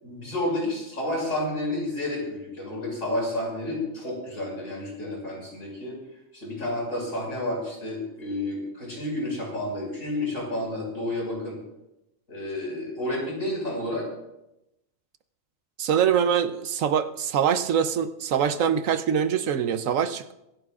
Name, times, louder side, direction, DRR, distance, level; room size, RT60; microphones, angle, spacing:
voice 1, 0.0-6.0 6.3-11.6 12.3-14.1, left 1 dB, 70° left, -2 dB, 6.1 m, -30 dB
voice 2, 15.8-20.3, right 8 dB, 75° right, 10 dB, 1.1 m, -24 dB
24.5 x 15.5 x 2.5 m, 0.89 s
omnidirectional pair, 1.4 m